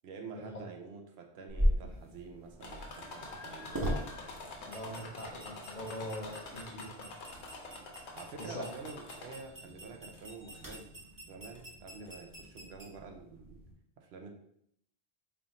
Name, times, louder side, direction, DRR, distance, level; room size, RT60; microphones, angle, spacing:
voice 1, 0.0-3.8 8.2-10.9 11.3-13.6 14.0-14.4, right 4 dB, 75° right, 4 dB, 0.8 m, -48 dB
sound 1, 1.5-13.7, equal, 20° right, 0.7 m, -39 dB
sound 2, 2.6-9.6 10.1-10.8 11.6-11.7 12.1-12.2, left 2 dB, 85° left, 1.0 m, -47 dB
voice 2, 4.7-7.2 8.4-8.7, equal, 50° left, -1 dB, 0.7 m, -42 dB
3.4 x 2.4 x 3.9 m, 0.69 s
omnidirectional pair, 1.1 m